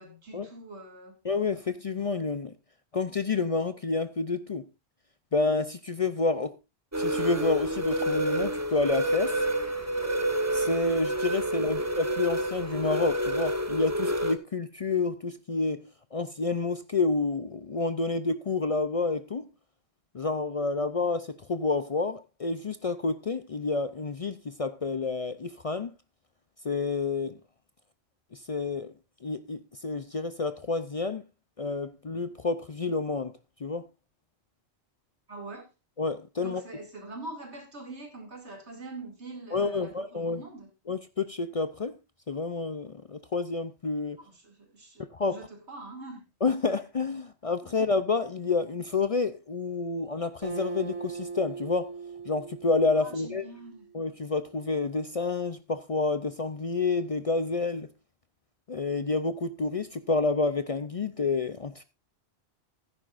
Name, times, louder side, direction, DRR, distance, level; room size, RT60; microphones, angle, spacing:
voice 1, 0.0-1.2 11.4-11.9 35.3-35.7 36.4-40.7 44.2-46.3 47.6-47.8 53.0-53.9, right 2 dB, 85° right, 2.9 m, -44 dB
voice 2, 1.2-2.5 2.9-4.7 5.3-6.6 7.0-9.4 10.5-19.5 20.1-25.9 26.6-27.4 28.3-28.9 29.2-31.2 31.6-33.3 33.6-33.8 36.0-36.6 39.5-40.4 40.9-41.9 42.3-44.2 45.1-45.5 46.4-51.9 52.3-53.5 53.9-57.9 58.7-61.8, left 3 dB, 40° left, 0.5 m, -29 dB
sound 1, 6.9-14.3, right 1 dB, 15° right, 0.9 m, -28 dB
Acoustic guitar, 50.4-54.0, right 5 dB, 35° right, 2.2 m, -39 dB
15.5 x 9.9 x 2.5 m
omnidirectional pair, 1.1 m